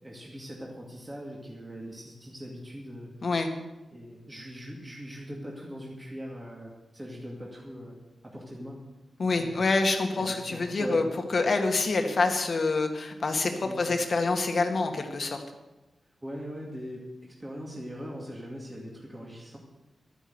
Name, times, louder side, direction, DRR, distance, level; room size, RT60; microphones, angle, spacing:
voice 1, 0.0-3.1 3.9-8.0 8.2-8.8 9.2-9.7 10.2-11.1 13.6-13.8 16.2-17.0 17.4-19.6, equal, 15° right, -3 dB, 2.3 m, -41 dB
voice 2, 9.2-11.0 11.3-15.4, left 3 dB, 50° left, 4 dB, 1.9 m, -26 dB
12.5 x 9.8 x 8.0 m, 1.0 s
wide cardioid pair, 120°, 0 cm